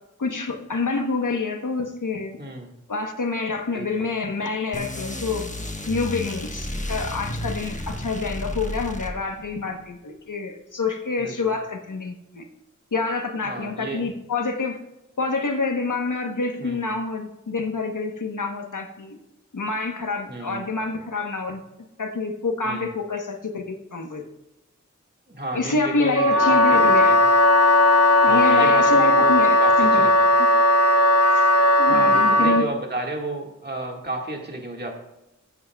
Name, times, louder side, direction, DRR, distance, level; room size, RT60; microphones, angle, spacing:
voice 1, 0.2-2.4 2.9-5.4 5.9-12.4 12.9-14.8 15.2-19.2 19.5-21.6 22.0-24.2 25.5-27.1 28.2-30.1 31.3-31.5 31.8-32.6, left 3 dB, 85° left, 4 dB, 1.0 m, -27 dB
voice 2, 3.7-4.1 11.2-11.5 13.4-14.1 16.6-16.9 20.3-20.7 22.6-22.9 25.3-27.2 28.2-30.3 31.8-34.9, right 1 dB, 35° right, 1 dB, 1.7 m, -32 dB
sound 1, 4.7-9.5, left 1 dB, 25° left, 1.1 m, -32 dB
Wind instrument woodwind instrument, 26.1-32.7, left 1 dB, 55° left, 0.8 m, -16 dB
15.0 x 8.2 x 2.3 m, 0.92 s
wide cardioid pair, 45°, 30 cm